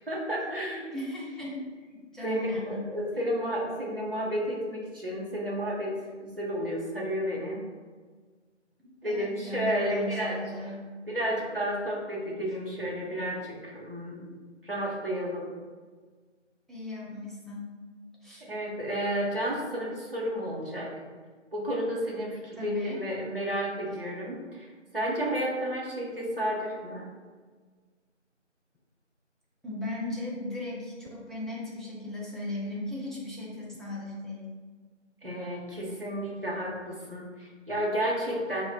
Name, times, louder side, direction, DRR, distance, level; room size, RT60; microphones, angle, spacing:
voice 1, 0.1-0.9 2.2-5.9 6.2-7.6 9.0-10.7 11.1-14.4 14.6-15.5 18.4-20.9 21.5-27.1 35.2-38.7, equal, 50° right, -4 dB, 0.6 m, -32 dB
voice 2, 0.9-2.8 9.0-10.8 16.7-17.7 18.2-18.4 22.6-23.0 29.6-34.5, left 1 dB, ahead, -6 dB, 0.4 m, -37 dB
3.9 x 2.0 x 2.3 m, 1.5 s
figure-of-eight pair, 180°, 37 cm